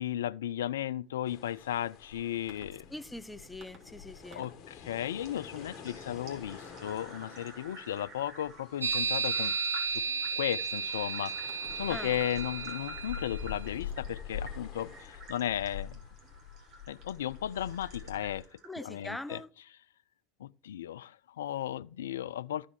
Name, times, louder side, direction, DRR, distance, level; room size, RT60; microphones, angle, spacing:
voice 1, 0.0-2.8 4.3-16.0 16.9-18.5 18.8-19.4 20.4-22.7, left 11 dB, 70° left, 0.3 m, -35 dB
sound 1, 1.3-18.4, left 7 dB, 40° left, 1.5 m, -46 dB
sound 2, 2.5-2.6 3.6-3.8 4.3-4.5 4.8-19.0, right 1 dB, 45° right, 2.3 m, -51 dB
voice 2, 2.9-4.4 11.9-12.2 18.6-19.5, left 1 dB, 5° left, 0.7 m, -42 dB
sound 3, 8.8-13.5, right 5 dB, 85° right, 0.6 m, -33 dB
13.5 x 4.9 x 3.7 m
figure-of-eight pair, 75°, 0 cm